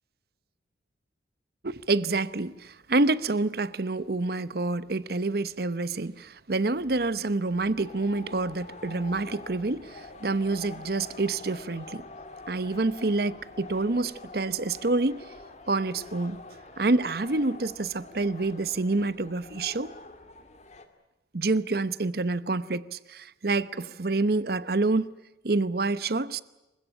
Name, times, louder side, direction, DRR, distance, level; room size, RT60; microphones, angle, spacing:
voice 1, 1.6-12.0 12.5-15.2 15.7-16.4 16.8-19.9 21.3-25.1 25.4-26.4, right 3 dB, 55° right, 0.9 m, -27 dB
sound 1, 7.8-20.8, left 2 dB, 40° left, 2.3 m, -46 dB
27.5 x 16.0 x 9.9 m
head